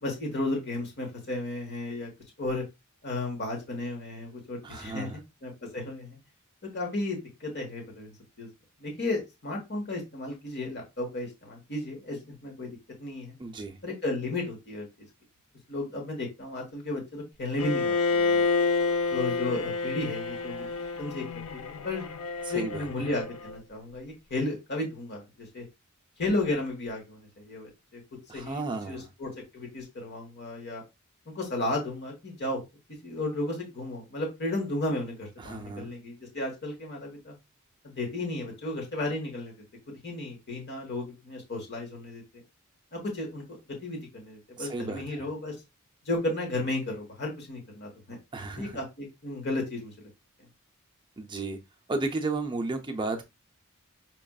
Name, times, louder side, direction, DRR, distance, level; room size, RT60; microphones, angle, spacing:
voice 1, 0.0-2.1 2.4-2.6 3.0-5.1 5.4-6.2 6.7-8.5 8.8-12.7 13.0-13.4 13.8-15.1 15.7-18.4 19.1-20.7 21.0-21.2 21.5-22.0 22.5-25.6 26.2-28.0 28.3-28.6 28.9-30.8 31.3-32.6 33.0-37.4 37.8-39.5 39.9-42.4 42.9-45.5 46.0-48.2 48.6-50.1, left 2 dB, 50° left, 1.3 m, -34 dB
voice 2, 4.6-5.2 13.4-13.8 22.5-22.9 28.3-29.1 35.4-35.9 44.6-45.3 48.3-48.8 51.2-51.6 51.9-53.3, right 3 dB, 20° right, 0.5 m, -33 dB
Bowed string instrument, 17.6-23.6, left 4 dB, 80° left, 0.6 m, -29 dB
5.9 x 2.5 x 2.3 m
head